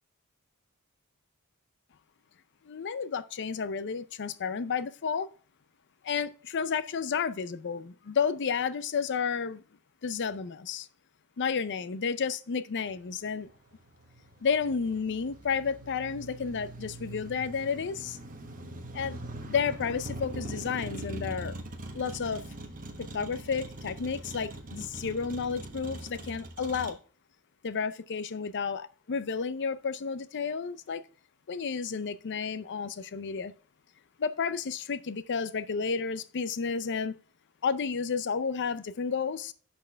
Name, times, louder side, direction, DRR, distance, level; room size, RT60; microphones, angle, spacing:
voice 1, 2.6-5.3 6.0-9.6 10.0-10.9 11.4-13.5 14.4-18.2 18.9-19.2 19.5-21.5 21.9-22.4 23.0-27.0 27.6-31.0 31.5-33.5 34.2-37.1 37.6-39.5, left 6 dB, 55° left, 0.5 m, -31 dB
Motor vehicle (road), 12.9-26.9, right 1 dB, 40° right, 1.2 m, -42 dB
11.0 x 4.4 x 3.3 m
head